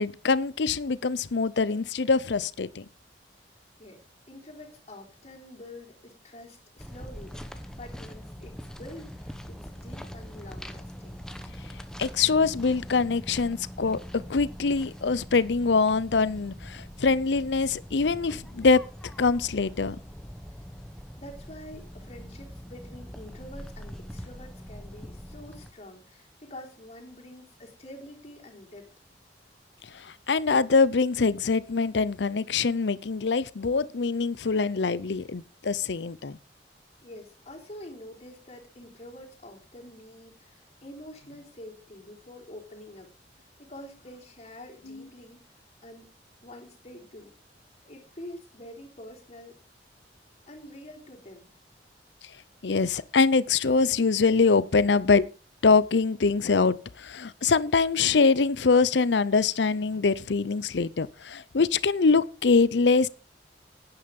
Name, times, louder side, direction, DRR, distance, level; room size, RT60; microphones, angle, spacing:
voice 1, 0.0-2.9 12.0-14.0 14.3-18.8 19.2-20.0 29.9-36.4 44.9-45.0 52.6-55.3 55.6-63.1, left 4 dB, 80° left, 0.6 m, -24 dB
voice 2, 3.8-11.2 20.5-20.6 21.2-28.9 37.0-43.1 43.6-45.4 45.8-46.1 46.4-47.3 47.9-49.6 50.5-51.5, left 1 dB, 40° left, 3.6 m, -46 dB
sound 1, 6.8-25.7, equal, 5° left, 1.1 m, -43 dB
11.5 x 9.9 x 5.3 m
head